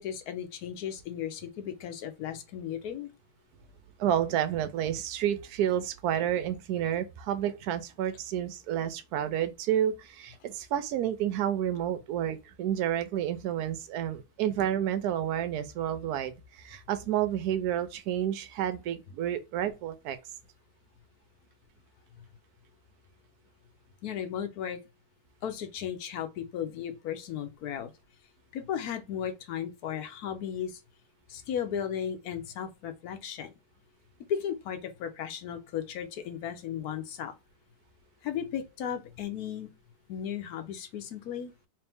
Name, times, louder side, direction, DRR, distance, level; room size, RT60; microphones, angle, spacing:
voice 1, 0.0-3.1 24.0-24.8 25.4-27.9 28.5-30.8 31.3-33.5 34.3-37.3 38.2-39.7 40.1-41.5, left 9 dB, 65° left, 1.0 m, -35 dB
voice 2, 4.0-20.2, right 10 dB, 70° right, 0.9 m, -30 dB
3.2 x 3.1 x 3.4 m
omnidirectional pair, 2.2 m